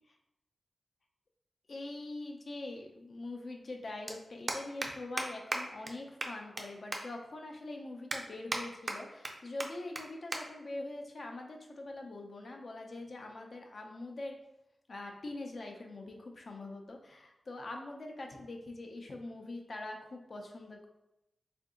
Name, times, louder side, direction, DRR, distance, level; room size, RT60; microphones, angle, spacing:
voice 1, 1.7-14.4 14.9-20.9, left 2 dB, 50° left, 2 dB, 0.5 m, -43 dB
sound 1, 1.8-1.9 3.3-3.4 3.6-3.8 4.1-4.2 4.5-4.9 5.2-5.3 5.5-5.6 5.9-6.0 6.2-6.6 6.9-7.0 7.5-7.6 8.1-8.6 8.9-9.3 9.6-9.7 9.9-10.0 10.3-10.4 10.7-11.0 11.7-12.0, right 2 dB, 30° right, 0.4 m, -35 dB
3.7 x 2.6 x 3.6 m, 0.87 s
wide cardioid pair, 135°, 0 cm